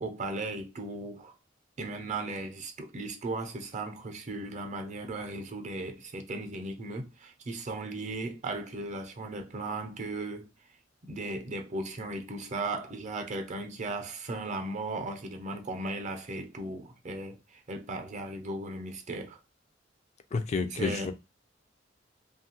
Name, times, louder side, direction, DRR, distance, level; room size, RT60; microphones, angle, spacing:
voice 1, 0.0-1.3 1.8-10.5 11.0-19.4 20.7-21.1, right 2 dB, 40° right, 0.5 m, -36 dB
voice 2, 20.3-21.1, left 4 dB, 40° left, 0.3 m, -30 dB
2.8 x 2.3 x 2.8 m
head